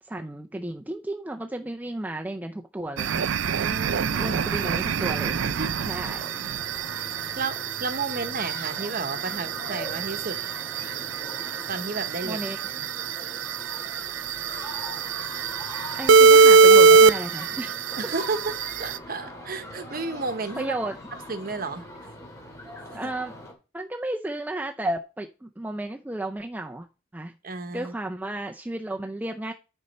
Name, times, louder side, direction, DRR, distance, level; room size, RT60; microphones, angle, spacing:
voice 1, 0.0-3.3 4.1-6.3 12.2-12.6 16.0-17.8 20.6-21.0 22.9-23.3 23.7-26.9 27.1-27.3 27.7-29.5, right 1 dB, 10° right, 3 dB, 0.4 m, -33 dB
sound 1, 3.0-19.0, right 4 dB, 70° right, 0.4 m, -21 dB
voice 2, 3.5-4.4 5.5-5.7 7.4-10.3 11.7-12.6 18.0-20.7 21.3-21.9 27.4-27.9, right 3 dB, 45° right, 9 dB, 1.0 m, -32 dB
sound 2, 3.9-23.5, left 1 dB, 15° left, 2.2 m, -41 dB
9.7 x 5.4 x 4.1 m, 0.32 s
head